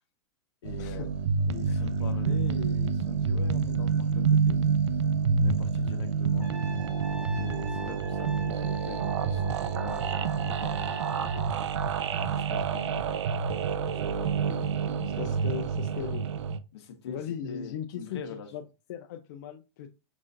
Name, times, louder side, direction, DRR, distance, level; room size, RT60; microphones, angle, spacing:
voice 1, 0.6-1.1 1.5-4.6 5.3-6.6 7.4-11.5 12.3-13.4 13.9-14.4 15.1-15.4 16.7-18.5, left 6 dB, 70° left, 1.1 m, -43 dB
sound 1, 0.7-16.6, right 5 dB, 90° right, 0.5 m, -28 dB
Trumpet, 6.4-11.5, equal, 10° right, 1.0 m, -43 dB
voice 2, 15.0-16.3 17.1-18.6 18.9-19.9, left 9 dB, 45° left, 0.4 m, -38 dB
5.9 x 2.5 x 2.5 m
supercardioid pair, 170°, 14 cm